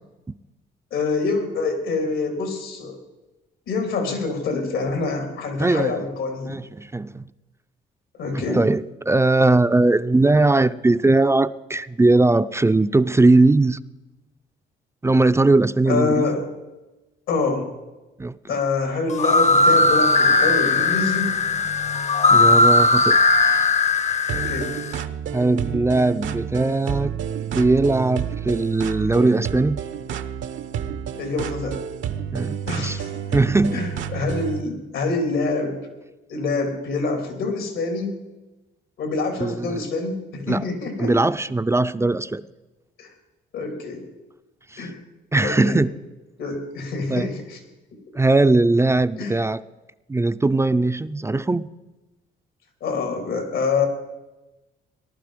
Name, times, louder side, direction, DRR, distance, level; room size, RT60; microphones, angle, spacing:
voice 1, 0.9-3.0 3.7-6.6 8.2-8.6 15.9-16.4 17.3-17.7 18.5-21.3 24.3-24.7 31.2-31.8 32.7-33.1 33.7-35.8 36.3-38.1 39.0-41.1 43.0-43.1 43.5-44.0 44.8-45.0 45.4-45.8 46.4-47.6 49.2-49.3 52.8-53.9, left 3 dB, 85° left, 5 dB, 3.5 m, -26 dB
voice 2, 5.6-6.0 6.5-7.3 8.3-13.8 15.0-16.3 18.2-18.3 22.3-23.8 24.3-24.5 25.3-27.1 27.4-29.8 32.3-33.0 33.3-33.8 39.4-39.9 40.5-40.7 41.0-42.4 44.7-44.9 45.3-45.9 47.1-47.3 48.1-49.6 50.1-51.7, right 2 dB, 15° right, 12 dB, 0.4 m, -20 dB
sound 1, 19.1-24.9, left 3 dB, 35° left, 0.8 m, -18 dB
sound 2, 24.3-34.6, right 8 dB, 75° right, 0.9 m, -30 dB
18.5 x 11.5 x 5.1 m, 1.1 s
cardioid pair, 90°, 20 cm